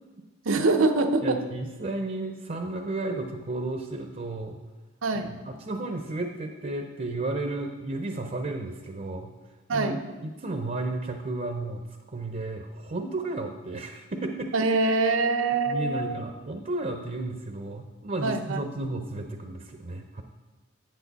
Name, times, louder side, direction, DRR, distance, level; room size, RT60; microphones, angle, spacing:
voice 1, 0.4-1.4 5.0-5.3 9.7-10.0 14.5-16.2 18.2-18.6, right 3 dB, 85° right, 5 dB, 0.7 m, -24 dB
voice 2, 1.2-4.6 5.1-9.3 9.7-11.8 12.1-14.5 15.7-20.2, right 2 dB, 40° right, 5 dB, 0.6 m, -33 dB
8.7 x 8.2 x 4.0 m, 1.2 s
head